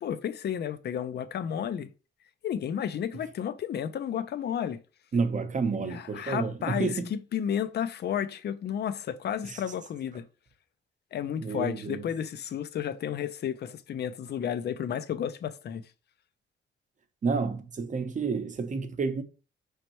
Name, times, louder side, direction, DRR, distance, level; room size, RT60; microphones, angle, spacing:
voice 1, 0.0-1.9 2.4-4.8 5.7-10.3 11.1-15.8, left 9 dB, 55° left, 0.4 m, -32 dB
voice 2, 5.1-7.1 9.5-9.6 11.4-12.0 17.2-19.2, right 4 dB, 40° right, 0.7 m, -30 dB
5.2 x 3.3 x 3.0 m
cardioid pair, 120°, 20 cm